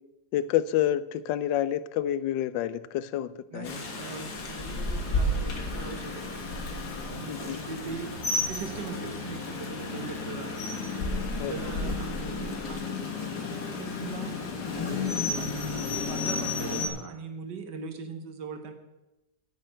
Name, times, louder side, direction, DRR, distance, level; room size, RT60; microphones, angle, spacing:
voice 1, 0.3-3.8 7.3-7.6 11.4-11.6 11.9-12.0, left 12 dB, 85° left, 16 dB, 1.3 m, -29 dB
voice 2, 3.5-8.2 8.5-10.9 11.4-14.4 14.9-18.7, right 5 dB, 70° right, 7 dB, 1.8 m, -41 dB
Rain, 3.6-16.9, left 3 dB, 60° left, 2.1 m, -32 dB
9.1 x 6.6 x 8.7 m, 1.0 s
omnidirectional pair, 1.9 m